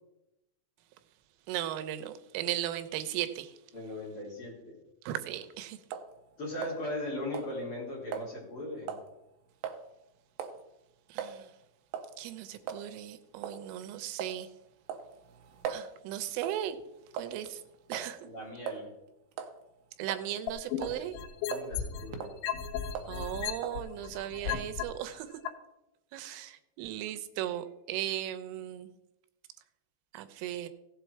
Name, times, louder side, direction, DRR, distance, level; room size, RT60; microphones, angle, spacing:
voice 1, 1.5-3.6 5.0-5.8 11.1-11.5 12.2-14.5 15.7-16.8 17.1-17.6 17.9-18.2 20.0-21.2 23.1-25.3 26.1-28.9 30.1-30.7, right 12 dB, 90° right, 10 dB, 3.4 m, -37 dB
voice 2, 3.7-4.8 6.4-8.9 18.2-18.9 21.5-22.3, left 1 dB, 30° left, -5 dB, 3.8 m, -38 dB
sound 1, 5.9-6.1 6.6-7.1 7.3-7.5 8.1-8.3 8.9-9.1 9.6-9.8 10.4-10.6 11.2-11.3 11.9-12.1 12.7-12.8 13.4-13.6 14.2-14.4 14.9-15.9 16.4-16.7 17.2-17.5 17.9-18.1 18.7-18.8 19.3-19.6 20.1-20.5 20.8-21.0 21.5-21.7 22.1-22.4 23.0-23.2 23.6-23.8, right 7 dB, 70° right, 2.8 m, -39 dB
sound 2, 20.5-22.1 22.4-24.8 25.5-25.6, left 9 dB, 80° left, 3.5 m, -34 dB
16.0 x 7.7 x 4.6 m, 0.90 s
omnidirectional pair, 5.6 m